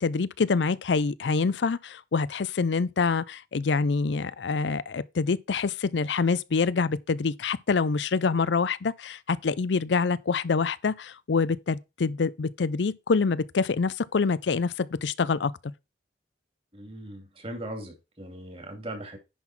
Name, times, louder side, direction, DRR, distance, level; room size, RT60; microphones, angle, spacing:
voice 1, 0.0-15.5, left 4 dB, 85° left, 0.5 m, -26 dB
voice 2, 16.7-19.2, right 1 dB, 30° right, 2.5 m, -39 dB
10.5 x 3.9 x 5.9 m
head